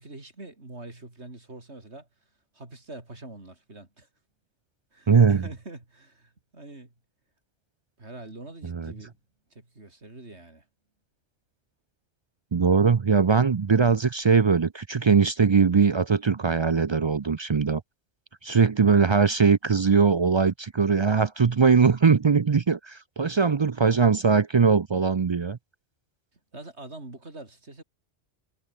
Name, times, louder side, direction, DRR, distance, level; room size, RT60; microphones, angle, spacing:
voice 1, 0.0-2.1 2.5-4.1 4.9-6.9 8.0-9.1 9.5-10.6 26.5-27.8, right 2 dB, 70° right, 4.5 m, -44 dB
voice 2, 5.1-5.4 8.6-8.9 12.5-17.8 18.4-25.6, right 5 dB, 45° right, 0.3 m, -21 dB
omnidirectional pair, 1.2 m